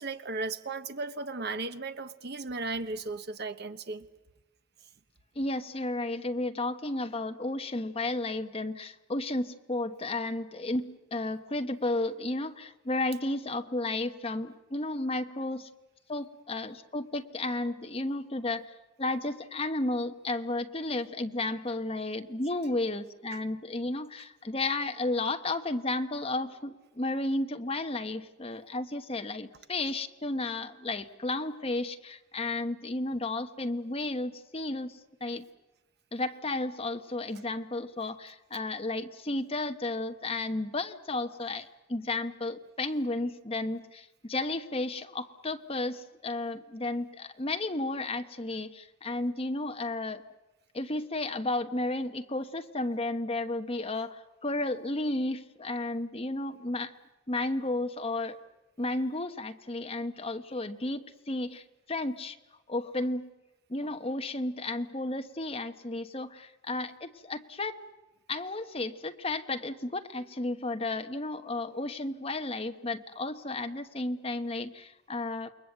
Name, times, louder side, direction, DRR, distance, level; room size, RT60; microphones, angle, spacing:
voice 1, 0.0-4.1, right 3 dB, 55° right, 10 dB, 1.2 m, -35 dB
voice 2, 5.3-15.7 16.1-35.4 36.1-50.2 50.7-56.9 57.3-58.4 58.8-62.4 62.7-63.3 63.7-67.8 68.3-75.5, left 2 dB, 30° left, 7 dB, 1.2 m, -33 dB
28.5 x 21.5 x 8.0 m, 1.1 s
head